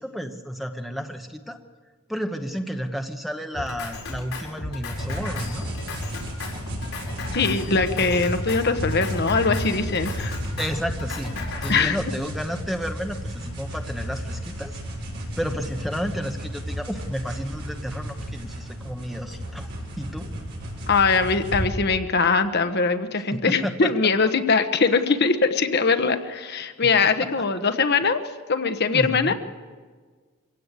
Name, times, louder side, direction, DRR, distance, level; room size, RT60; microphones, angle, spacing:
voice 1, 0.0-1.6 2.1-5.6 7.9-8.3 10.6-14.8 15.4-19.7 20.0-20.3 23.3-23.9 28.9-29.3, equal, ahead, 5 dB, 1.0 m, -31 dB
Drum kit, 3.5-11.9, left 2 dB, 70° left, 4.5 m, -35 dB
sound 1, 4.9-21.6, equal, 50° right, 6.7 m, -33 dB
voice 2, 7.3-10.4 11.7-12.0 20.9-28.2 28.5-29.3, left 4 dB, 50° left, 8 dB, 1.1 m, -22 dB
24.5 x 16.5 x 8.3 m, 1.5 s
head